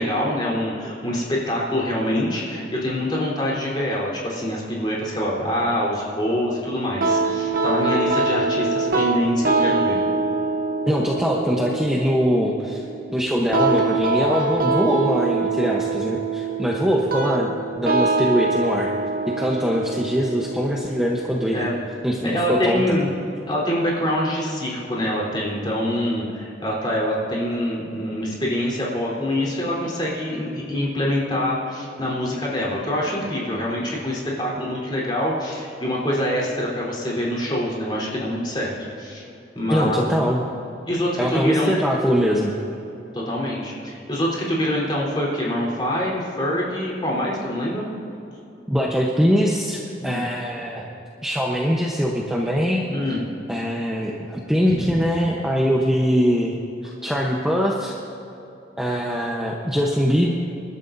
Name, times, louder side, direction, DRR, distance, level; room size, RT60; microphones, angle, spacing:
voice 1, 0.0-10.0 21.5-21.7 22.2-23.1 23.5-38.7 39.0-39.2 39.5-40.0 40.9-41.8 43.1-47.9 50.0-50.2 52.9-53.2 54.7-54.8, left 1 dB, 25° left, -5 dB, 3.8 m, -25 dB
sound 1, 7.0-22.0, right 3 dB, 50° right, 1.0 m, -24 dB
voice 2, 10.9-12.9 13.1-19.0 19.3-21.7 22.0-23.0 39.7-40.4 41.2-42.5 48.7-50.9 51.2-52.9 53.5-56.5 56.8-57.9 58.8-60.3, equal, 5° right, -3 dB, 0.9 m, -22 dB
26.5 x 12.5 x 2.7 m, 2.9 s
head